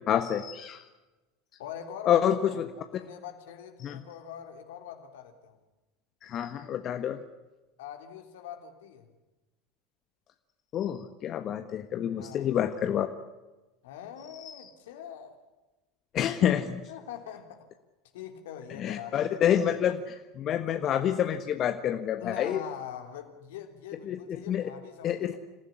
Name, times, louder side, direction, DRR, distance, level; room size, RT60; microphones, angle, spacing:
voice 1, 0.1-0.8 2.1-2.7 3.8-4.0 6.2-7.2 10.7-13.1 14.4-14.5 16.1-16.8 18.8-22.6 24.1-24.6 25.0-25.4, left 10 dB, 45° left, 8 dB, 1.4 m, -28 dB
voice 2, 1.6-2.6 2.9-5.6 7.8-9.1 12.1-12.5 13.8-15.4 16.9-17.7 18.1-19.7 20.0-20.1 22.2-25.4, left 9 dB, 70° left, 6 dB, 3.3 m, -43 dB
27.5 x 15.0 x 9.9 m, 1.1 s
hypercardioid pair, 80°, 0 cm